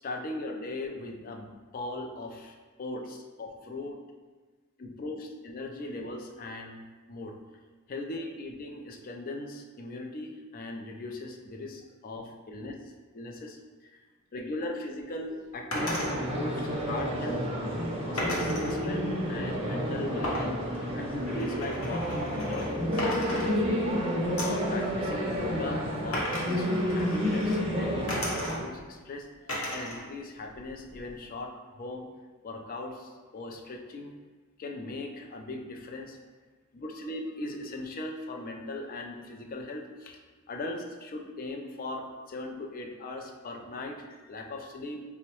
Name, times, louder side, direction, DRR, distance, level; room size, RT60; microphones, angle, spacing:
voice 1, 0.0-4.0 4.8-7.4 7.9-12.7 13.1-14.0 14.3-17.5 18.0-24.0 24.4-26.7 26.9-31.5 31.8-32.1 32.4-34.2 34.6-36.2 36.7-40.2 40.5-45.0, left 2 dB, 40° left, 3 dB, 0.4 m, -39 dB
sound 1, 15.7-16.1 18.2-18.7 20.2-22.7 23.0-23.9 24.4-24.7 26.1-27.6 28.1-28.8 29.5-30.0 30.4-31.2, left 1 dB, 75° left, 0.8 m, -35 dB
sound 2, 15.8-28.6, equal, 25° right, 0.5 m, -30 dB
4.5 x 2.1 x 2.9 m, 1.4 s
head